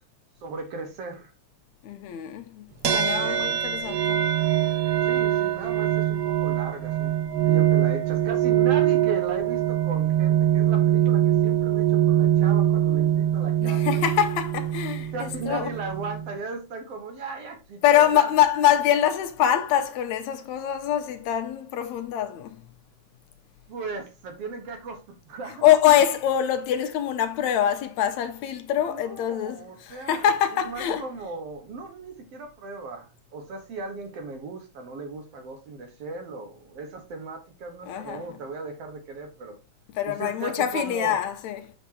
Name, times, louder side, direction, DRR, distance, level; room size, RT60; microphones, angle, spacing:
voice 1, 0.4-1.3 3.2-3.5 5.0-14.0 15.1-18.3 23.7-25.6 28.9-30.3 30.6-39.6 40.1-41.2, right 3 dB, 60° right, 2.1 m, -37 dB
voice 2, 1.8-4.2 13.6-15.7 17.8-22.6 25.5-31.1 37.9-38.4 39.9-41.7, left 10 dB, 80° left, 1.9 m, -24 dB
sound 1, 2.8-16.4, right 11 dB, 90° right, 0.8 m, -23 dB
7.2 x 6.0 x 2.8 m
omnidirectional pair, 3.5 m